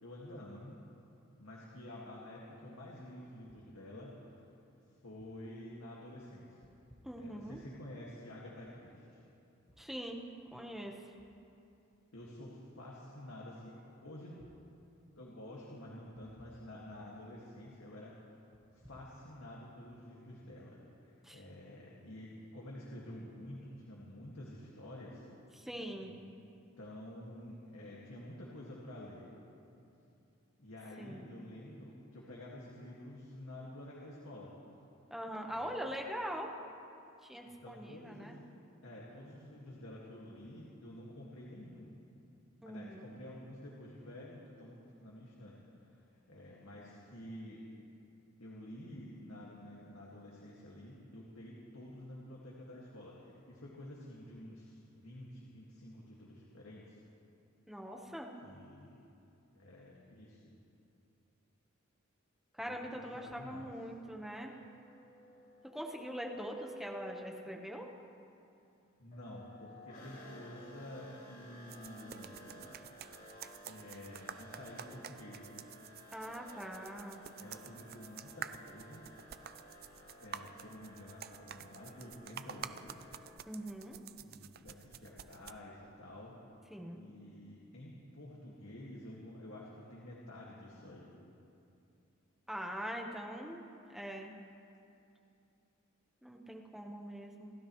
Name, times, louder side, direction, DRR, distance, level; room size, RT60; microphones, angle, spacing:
voice 1, 0.0-0.8 1.4-4.4 5.0-6.6 7.2-9.2 12.1-14.4 15.2-18.2 18.7-25.3 26.0-26.2 26.8-29.3 30.6-34.5 35.5-35.8 37.5-38.5 38.8-41.9 42.6-46.0 46.3-47.6 48.4-57.0 58.4-59.0 59.5-60.6 62.6-63.7 69.0-73.0 73.6-75.6 77.4-79.1 80.2-83.1 84.2-86.4 86.9-91.2, left 1 dB, 80° left, -4 dB, 2.0 m, -50 dB
voice 2, 7.0-7.6 9.8-10.2 10.5-11.0 21.2-21.4 25.5-26.1 31.0-31.3 35.1-36.5 37.2-38.4 42.6-43.1 57.7-58.3 62.5-64.5 65.7-67.9 76.1-77.2 83.4-84.0 86.7-87.0 92.5-94.4 96.2-97.5, equal, ahead, 1 dB, 1.1 m, -43 dB
sound 1, 64.2-67.5 69.1-83.3, equal, 50° left, 4.3 m, -54 dB
sound 2, 71.7-85.5, right 8 dB, 45° right, 0.4 m, -50 dB
28.5 x 13.0 x 3.2 m, 2.6 s
head